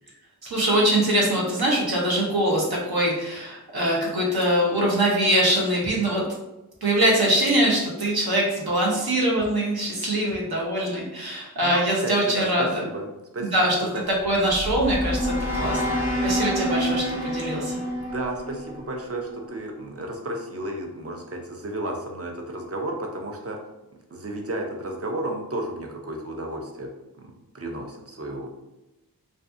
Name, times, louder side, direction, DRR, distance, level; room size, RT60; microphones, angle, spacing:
voice 1, 0.4-6.2 6.8-12.8 13.4-13.7 14.2-17.7, right 1 dB, 75° right, -3 dB, 0.8 m, -23 dB
voice 2, 11.6-13.1 13.3-13.5 13.9-14.0 18.0-23.6 24.1-26.9 27.2-28.5, right 1 dB, 40° right, 2 dB, 0.5 m, -32 dB
sound 1, 14.2-19.4, equal, 5° right, 0.9 m, -28 dB
2.5 x 2.4 x 2.5 m, 0.98 s
wide cardioid pair, 45°, 37 cm